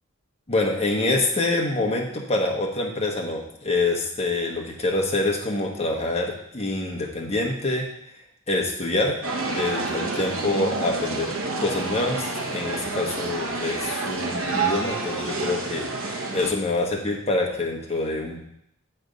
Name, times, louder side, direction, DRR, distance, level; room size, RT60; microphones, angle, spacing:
voice 1, 0.5-7.9 8.5-9.2 9.4-18.4, left 2 dB, 30° left, -1 dB, 1.1 m, -26 dB
sound 1, 9.2-16.5, right 3 dB, 80° right, 0.9 m, -29 dB
8.0 x 3.4 x 5.1 m, 0.77 s
head